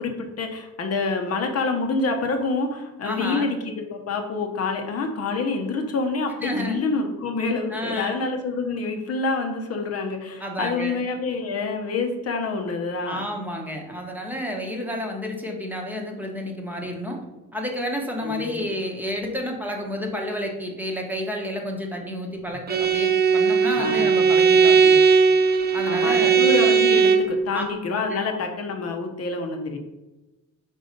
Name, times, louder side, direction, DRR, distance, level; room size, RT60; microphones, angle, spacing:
voice 1, 0.0-13.2 18.2-18.6 23.7-24.2 25.8-29.8, left 3 dB, 50° left, 3 dB, 0.9 m, -27 dB
voice 2, 3.0-3.5 6.4-6.8 7.7-8.3 10.4-11.1 13.0-17.2 17.5-25.0 25.7-26.5 27.5-27.6 28.1-28.2, equal, 5° right, 0 dB, 1.0 m, -30 dB
Bowed string instrument, 22.7-27.4, right 6 dB, 30° right, 0.6 m, -18 dB
5.4 x 3.9 x 5.2 m, 1.0 s
cardioid pair, 145°, 33 cm